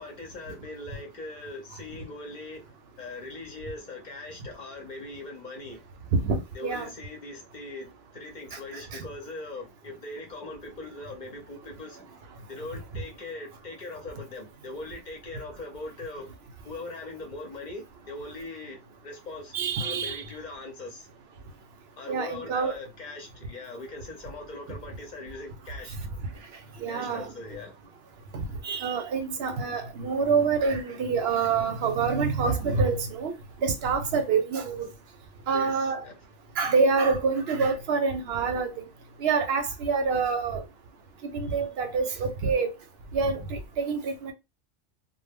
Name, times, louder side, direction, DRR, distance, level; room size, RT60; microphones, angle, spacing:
voice 1, 0.0-5.8 6.5-12.0 12.5-16.3 16.6-21.1 22.0-26.0 26.9-27.7 35.5-36.2, left 2 dB, 50° left, 0.6 m, -41 dB
voice 2, 6.1-6.9 8.9-9.0 19.5-20.2 22.1-22.7 26.8-27.3 28.3-33.3 33.6-34.9 35.5-36.0 36.6-38.8 39.2-40.6 41.3-42.7 43.1-44.3, right 5 dB, 65° right, 0.7 m, -26 dB
2.1 x 2.0 x 3.4 m
omnidirectional pair, 1.3 m